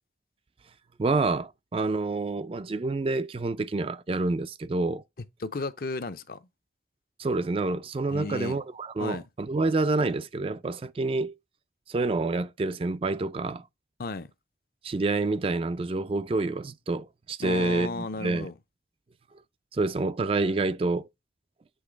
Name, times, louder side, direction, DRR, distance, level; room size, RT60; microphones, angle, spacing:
voice 1, 1.0-5.0 7.2-11.3 11.9-13.6 14.8-18.5 19.7-21.1, right 3 dB, 30° right, 0.3 m, -28 dB
voice 2, 5.4-6.5 8.1-8.6 9.0-9.2 14.0-14.3 17.4-18.5, left 3 dB, 55° left, 0.6 m, -34 dB
8.0 x 3.2 x 5.0 m
head